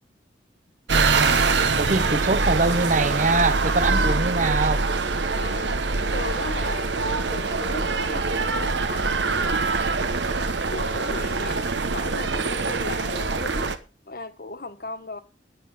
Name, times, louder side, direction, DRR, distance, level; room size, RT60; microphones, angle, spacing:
voice 1, 0.9-1.4 1.8-4.8, right 3 dB, 45° right, 0.9 m, -23 dB
sound 1, 0.9-13.8, right 4 dB, 80° right, 1.1 m, -24 dB
voice 2, 5.4-9.9 10.7-15.2, left 3 dB, 55° left, 1.3 m, -37 dB
10.0 x 9.8 x 5.4 m
head